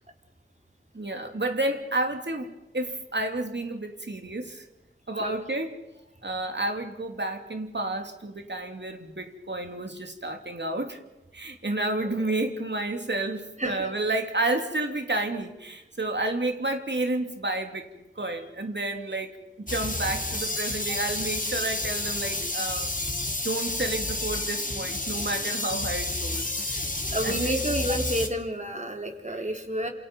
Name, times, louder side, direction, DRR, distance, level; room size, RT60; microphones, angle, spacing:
voice 1, 0.9-4.6 5.1-5.8 6.2-11.0 11.3-17.9 18.2-23.1 23.4-26.4 26.7-26.8 27.2-27.5 29.3-29.4, right 2 dB, 60° right, 5 dB, 2.9 m, -30 dB
voice 2, 11.7-12.2 13.6-13.9 27.1-29.9, right 1 dB, 35° right, 3 dB, 4.2 m, -30 dB
sound 1, 19.7-28.3, left 2 dB, 40° left, 2.8 m, -30 dB
28.5 x 27.5 x 5.4 m, 0.98 s
wide cardioid pair, 50°, 21 cm